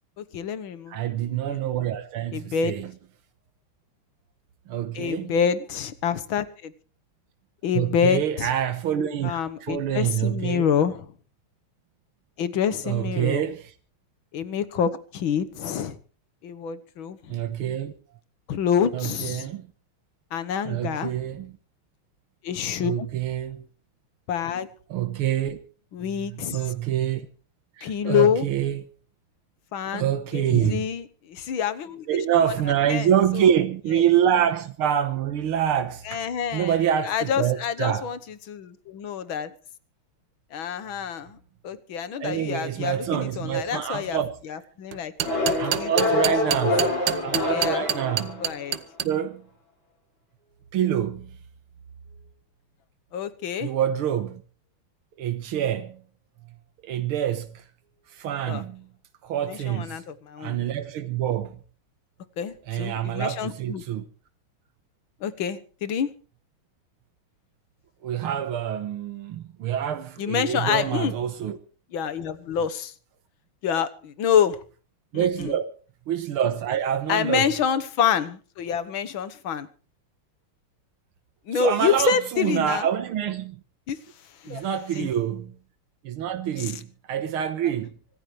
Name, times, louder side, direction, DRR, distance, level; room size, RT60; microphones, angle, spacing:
voice 1, 0.2-1.0 1.3-1.4 2.3-2.8 4.9-6.7 7.6-8.5 9.2-11.1 12.4-13.4 14.3-16.0 16.4-17.4 18.5-19.5 20.3-21.2 22.4-23.1 24.3-24.7 25.9-26.6 27.8-28.5 29.7-32.1 32.9-33.1 33.3-33.4 34.0-34.1 36.1-36.7 37.1-38.2 38.5-39.5 40.5-41.4 41.6-44.2 44.5-45.1 45.8-45.9 46.2-46.6 47.4-47.8 48.4-48.8 53.1-53.7 58.5-58.6 59.5-60.6 62.4-63.8 65.2-66.1 70.2-71.1 71.9-72.9 73.6-74.6 75.1-75.5 77.1-79.7 81.5-82.9 83.9-84.0 84.4-84.6 85.0-85.1 86.6-86.7, left 7 dB, 70° left, 2.0 m, -27 dB
voice 2, 0.9-2.9 4.7-5.4 7.7-10.7 12.8-13.7 17.3-17.9 18.9-19.7 20.6-21.5 22.8-23.7 24.9-25.6 26.2-27.3 27.8-28.8 29.9-30.9 32.1-36.2 36.5-38.1 42.2-44.4 45.6-46.9 47.2-48.5 49.0-49.4 50.7-51.3 53.6-54.4 55.2-56.0 56.8-57.6 58.1-58.9 59.2-60.0 60.4-61.6 62.7-64.0 68.0-71.6 75.1-75.6 76.1-77.5 81.5-83.6 84.5-85.6 86.0-87.9, right 10 dB, 85° right, 2.0 m, -26 dB
sound 1, 44.9-49.1, right 11 dB, 65° right, 1.5 m, -26 dB
sound 2, 45.2-48.8, left 2 dB, 50° left, 7.3 m, -26 dB
25.0 x 14.5 x 3.2 m
omnidirectional pair, 2.3 m